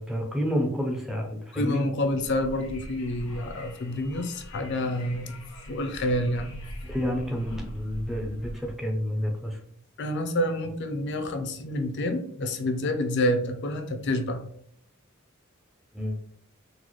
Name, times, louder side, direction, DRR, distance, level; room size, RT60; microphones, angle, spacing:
voice 1, 0.0-1.8 6.8-9.6 15.9-16.2, equal, ahead, 1 dB, 0.4 m, -29 dB
voice 2, 1.5-5.4 5.7-6.6 10.0-14.4, left 1 dB, 55° left, 7 dB, 0.4 m, -28 dB
Wind, 2.0-8.7, equal, 85° left, 0.9 m, -42 dB
3.8 x 2.0 x 3.0 m, 0.64 s
head